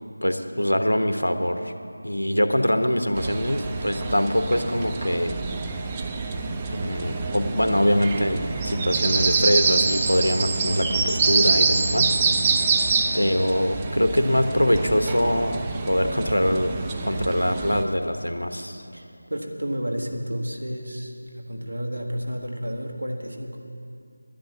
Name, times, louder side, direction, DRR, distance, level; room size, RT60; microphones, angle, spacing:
voice 1, 0.2-1.7 2.0-5.4 6.7-12.1 13.1-16.7 17.0-18.8, equal, 75° left, 7 dB, 1.0 m, -23 dB
sound 1, 3.2-17.8, right 4 dB, 15° right, 0.4 m, -26 dB
voice 2, 18.9-23.6, equal, 70° right, 2 dB, 1.7 m, -31 dB
11.0 x 10.5 x 7.1 m, 2.5 s
figure-of-eight pair, 165°, 0 cm